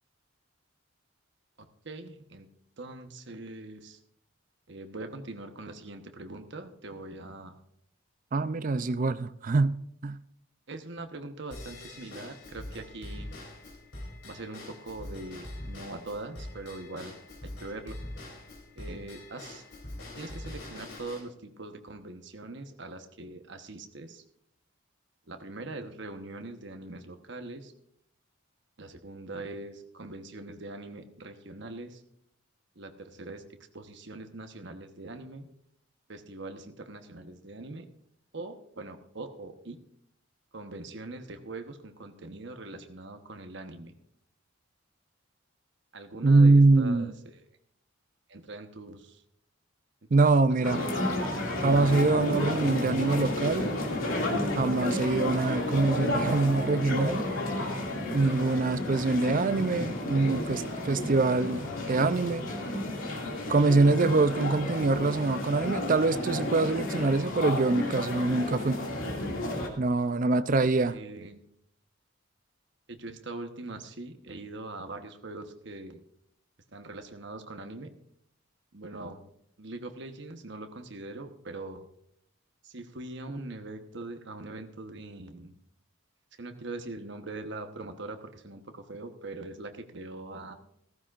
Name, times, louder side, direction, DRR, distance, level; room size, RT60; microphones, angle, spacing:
voice 1, 1.8-2.5 2.8-4.0 4.7-7.6 10.7-13.4 14.2-17.2 17.4-18.0 18.8-19.6 20.1-24.2 25.3-27.7 28.8-32.0 32.8-33.5 33.7-35.5 36.1-37.9 38.3-39.8 40.5-43.9 45.9-47.5 48.3-49.2 50.1-50.2 50.6-51.0 51.8-51.9 70.5-71.4 72.9-76.0 76.7-77.9 78.7-79.3 79.6-81.8 82.6-85.5 86.4-90.5, right 2 dB, 55° right, 1.1 m, -42 dB
voice 2, 8.3-9.8 10.0-10.2 46.2-47.1 50.1-50.8 51.6-53.7 54.5-57.3 58.1-62.5 63.5-68.8 69.8-70.9, right 3 dB, 40° right, 0.5 m, -24 dB
Drum kit / Drum / Bell, 11.5-21.2, left 1 dB, 60° left, 3.4 m, -43 dB
sound 1, 50.6-69.7, left 1 dB, 80° left, 2.3 m, -32 dB
15.5 x 14.5 x 2.5 m
head